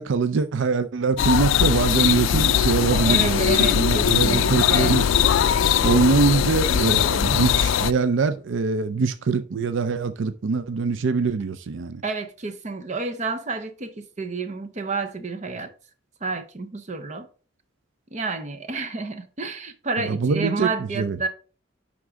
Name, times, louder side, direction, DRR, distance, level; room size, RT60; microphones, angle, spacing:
voice 1, 0.0-5.1 5.8-12.0 20.1-20.7 21.0-21.2, right 4 dB, 75° right, 0.5 m, -23 dB
sound 1, 1.2-7.9, left 9 dB, 85° left, 0.3 m, -20 dB
voice 2, 2.9-5.0 12.0-15.7 16.2-17.3 18.1-21.3, right 4 dB, 40° right, 0.8 m, -30 dB
9.9 x 3.7 x 3.6 m
head